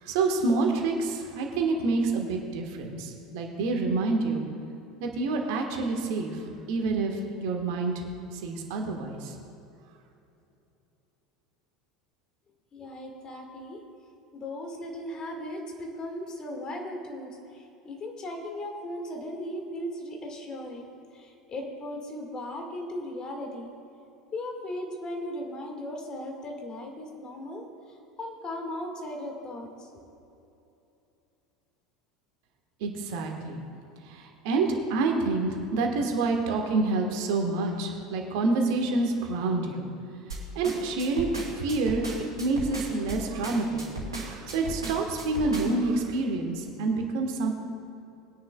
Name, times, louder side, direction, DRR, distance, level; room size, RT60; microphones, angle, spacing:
voice 1, 0.0-4.5 5.0-6.4 6.7-7.9 8.3-9.4 32.8-33.6 34.0-39.9 40.5-42.0 42.4-43.8 44.1-47.5, right 3 dB, 60° right, 2 dB, 1.5 m, -27 dB
voice 2, 12.7-13.8 14.3-17.3 17.9-23.7 24.3-27.6 28.2-29.7, left 1 dB, 30° left, 2 dB, 1.9 m, -37 dB
sound 1, 40.3-45.9, right 2 dB, 80° right, 2.4 m, -36 dB
20.5 x 10.0 x 2.4 m, 2.8 s
figure-of-eight pair, 75°, 2 cm